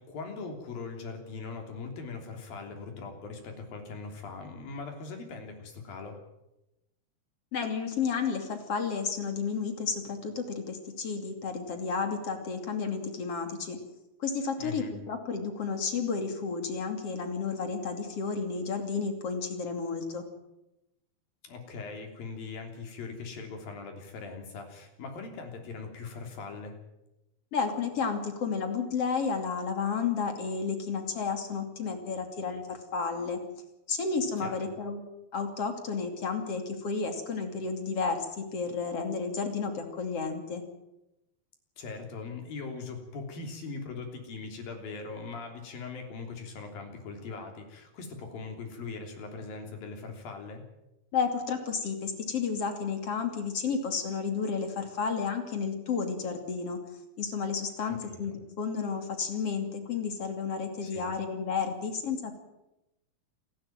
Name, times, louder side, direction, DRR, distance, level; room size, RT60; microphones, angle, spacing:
voice 1, 0.0-6.2 14.6-14.9 21.4-26.8 34.4-34.7 41.8-50.6 57.9-58.4 60.8-61.1, left 4 dB, 65° left, 4 dB, 5.0 m, -41 dB
voice 2, 7.5-13.8 14.2-20.2 27.5-33.4 33.9-35.0 35.3-40.6 51.1-56.8 57.2-62.3, left 5 dB, 40° left, 6 dB, 3.3 m, -32 dB
28.0 x 12.0 x 9.2 m, 0.91 s
omnidirectional pair, 4.5 m